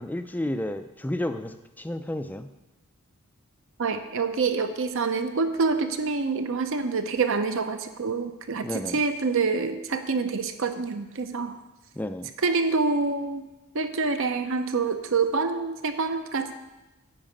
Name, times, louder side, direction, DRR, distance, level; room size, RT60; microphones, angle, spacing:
voice 1, 0.0-2.5 8.6-9.0 12.0-12.3, left 1 dB, 10° left, 9 dB, 0.4 m, -31 dB
voice 2, 3.8-11.5 12.4-13.4 13.7-16.5, right 4 dB, 60° right, 8 dB, 0.7 m, -26 dB
8.9 x 5.0 x 7.6 m, 1.1 s
head